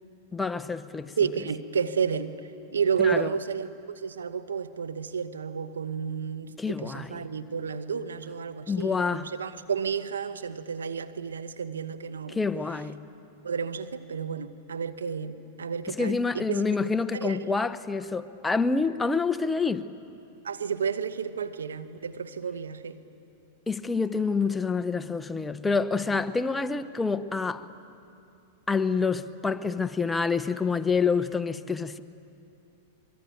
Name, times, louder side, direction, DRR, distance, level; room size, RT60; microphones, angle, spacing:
voice 1, 0.3-1.1 3.0-3.3 6.6-7.2 8.7-9.3 12.3-13.0 15.9-19.9 23.7-27.7 28.7-32.0, left 4 dB, 10° left, 0.8 m, -27 dB
voice 2, 1.2-2.4 2.7-12.4 13.4-16.6 17.1-17.4 20.4-23.0, right 6 dB, 85° right, 1.1 m, -31 dB
24.5 x 22.5 x 9.1 m
hypercardioid pair, 105°, 0 cm